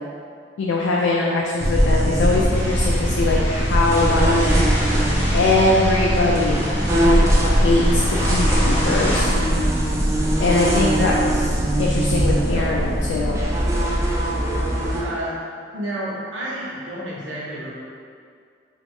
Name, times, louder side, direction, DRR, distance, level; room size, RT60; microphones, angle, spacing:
voice 1, 0.6-4.5 5.3-6.6 7.5-9.3 10.4-11.3 11.8-13.4, left 2 dB, 85° left, -3 dB, 0.3 m, -21 dB
sound 1, 1.6-15.0, equal, 15° right, 0.4 m, -20 dB
sound 2, 2.5-9.2, equal, 10° left, 0.8 m, -29 dB
voice 2, 10.9-11.2 12.5-12.7 14.6-15.3 15.7-17.7, right 1 dB, 85° right, -6 dB, 0.8 m, -31 dB
3.0 x 2.4 x 3.4 m, 2.2 s
head